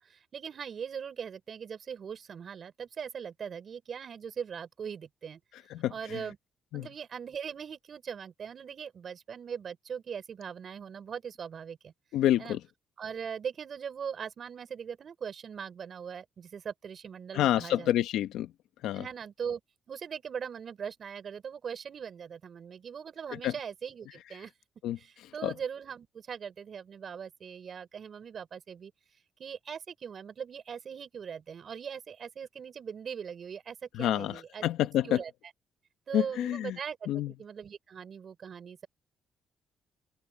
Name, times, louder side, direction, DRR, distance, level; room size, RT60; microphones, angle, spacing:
voice 1, 0.0-5.4 5.9-6.4 6.7-11.9 12.4-12.6 13.0-17.9 18.9-19.6 19.9-24.5 25.0-28.9 29.4-34.7 35.0-35.3 36.1-38.9, right 7 dB, 50° right, 6.3 m, -40 dB
voice 2, 5.7-6.2 6.7-6.9 12.1-12.6 17.3-18.5 18.8-19.0 23.3-23.5 24.8-25.0 25.4-25.5 33.9-35.2 36.1-36.8 37.1-37.3, left 12 dB, 90° left, 1.1 m, -28 dB
open air
cardioid pair, 90°, 0 cm